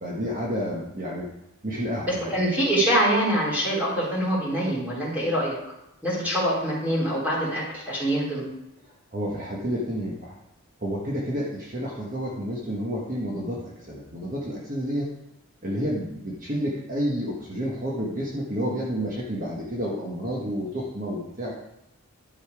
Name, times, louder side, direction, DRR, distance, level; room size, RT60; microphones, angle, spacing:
voice 1, 0.0-1.3 1.6-2.4 9.1-10.3 10.8-15.1 15.6-21.5, equal, 35° right, -4 dB, 1.3 m, -30 dB
voice 2, 2.0-5.6 6.0-8.5, right 1 dB, 5° right, -8 dB, 3.7 m, -24 dB
12.0 x 5.7 x 4.8 m, 0.88 s
head